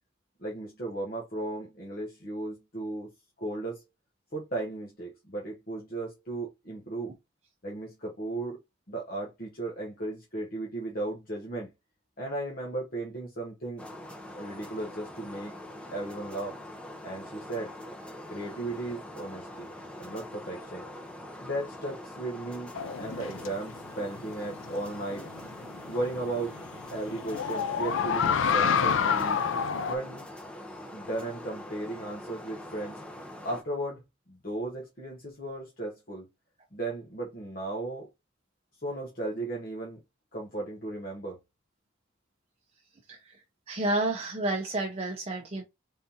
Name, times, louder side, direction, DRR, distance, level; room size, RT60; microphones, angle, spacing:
voice 1, 0.4-3.1 3.4-3.8 4.3-7.1 7.6-8.6 8.9-11.7 12.2-13.9 14.4-15.5 15.9-16.6 17.0-17.7 18.3-19.7 20.0-20.9 21.4-25.3 25.9-26.5 26.9-29.4 29.9-30.3 30.9-33.0 33.4-34.0 34.3-36.3 36.7-38.1 38.8-40.0 40.3-41.4, right 2 dB, 45° left, 1.1 m, -35 dB
sound 1, 13.8-33.6, left 1 dB, 5° left, 0.8 m, -43 dB
sound 2, 22.7-30.0, left 6 dB, 70° left, 0.4 m, -28 dB
voice 2, 43.1-43.4 43.7-45.6, right 2 dB, 30° right, 0.6 m, -30 dB
4.1 x 3.6 x 2.8 m
head